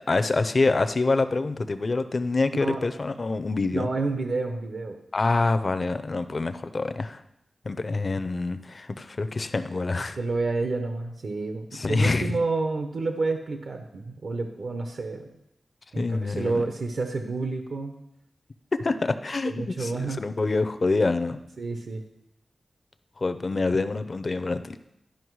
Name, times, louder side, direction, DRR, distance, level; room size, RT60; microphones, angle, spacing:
voice 1, 0.1-3.9 5.1-7.2 7.6-10.2 11.7-12.4 16.0-16.6 18.7-21.4 23.2-24.8, left 3 dB, 45° left, 10 dB, 0.5 m, -26 dB
voice 2, 3.7-5.0 10.2-15.3 15.9-18.0 19.4-20.2 21.6-22.1, right 3 dB, 75° right, 5 dB, 0.8 m, -29 dB
11.5 x 5.6 x 4.7 m, 0.83 s
wide cardioid pair, 100°, 0 cm